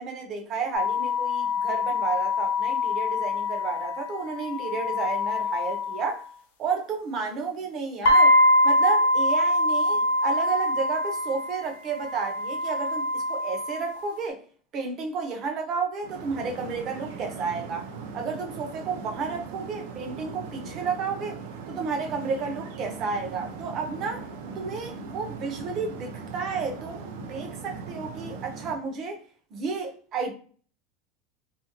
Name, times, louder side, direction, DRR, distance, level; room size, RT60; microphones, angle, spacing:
voice 1, 0.0-6.3 6.6-8.4 8.6-14.4 14.7-17.9 18.1-21.4 21.7-24.2 24.6-29.2 29.5-30.3, right 5 dB, 30° right, 0.6 m, -31 dB
sound 1, 0.7-6.2 8.1-14.1, left 2 dB, 85° left, 0.5 m, -24 dB
sound 2, 16.0-28.7, right 5 dB, 75° right, 0.5 m, -39 dB
2.8 x 2.5 x 2.8 m
supercardioid pair, 175°, 0 cm